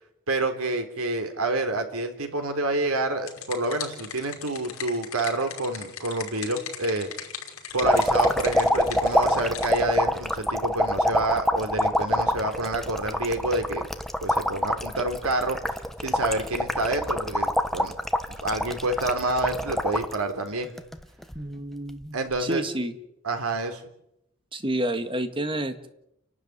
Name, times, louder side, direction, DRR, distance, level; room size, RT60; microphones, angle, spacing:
voice 1, 0.3-7.1 7.7-13.8 14.2-15.6 16.0-17.9 18.4-20.7 22.1-22.7 23.2-23.8, right 2 dB, 85° right, 6 dB, 3.6 m, -28 dB
sound 1, 2.9-9.8, left 7 dB, 75° left, 5.5 m, -38 dB
sound 2, 7.8-20.2 20.6-21.4 22.4-22.5, equal, ahead, 1.2 m, -25 dB
voice 2, 21.4-22.9 24.5-25.9, right 1 dB, 25° right, 9 dB, 1.8 m, -29 dB
29.5 x 12.0 x 9.6 m, 0.81 s
head